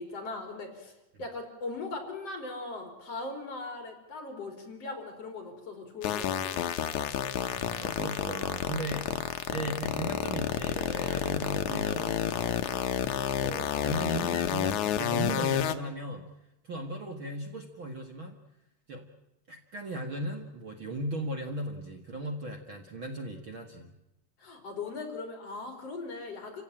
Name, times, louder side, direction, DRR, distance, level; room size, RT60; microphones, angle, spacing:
voice 1, 0.0-6.7 13.1-13.4 13.7-14.3 24.4-26.6, left 3 dB, 45° left, 4 dB, 5.1 m, -40 dB
sound 1, 6.0-15.8, left 10 dB, 65° left, 2.3 m, -30 dB
voice 2, 7.5-12.7 13.4-16.2 16.6-18.4 18.9-19.1 19.5-23.9, right 1 dB, 40° right, 4 dB, 2.2 m, -37 dB
29.0 x 16.5 x 9.0 m, 0.91 s
omnidirectional pair, 3.9 m